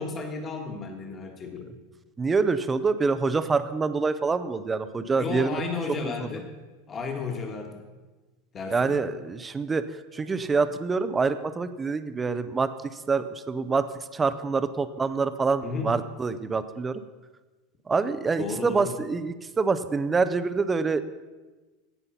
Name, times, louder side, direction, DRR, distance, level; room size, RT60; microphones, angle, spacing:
voice 1, 0.0-1.7 5.2-6.5 6.9-7.8 8.5-9.0 15.6-15.9 18.4-18.9, left 4 dB, 20° left, 3 dB, 1.6 m, -33 dB
voice 2, 2.2-5.6 6.0-6.1 8.7-9.8 10.1-13.9 14.1-17.0 17.9-21.0, right 4 dB, 15° right, 12 dB, 0.4 m, -26 dB
16.5 x 5.5 x 5.6 m, 1.2 s
supercardioid pair, 160°, 0 cm